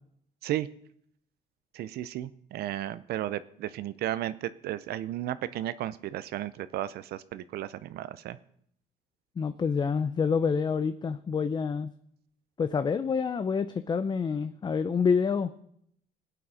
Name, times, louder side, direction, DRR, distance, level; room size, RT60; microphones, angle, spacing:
voice 1, 1.7-8.4, right 13 dB, 70° right, 15 dB, 0.6 m, -34 dB
voice 2, 9.4-11.9 12.6-15.6, left 5 dB, 25° left, 11 dB, 0.5 m, -27 dB
16.5 x 8.7 x 5.0 m, 0.69 s
cardioid pair, 110°, 17 cm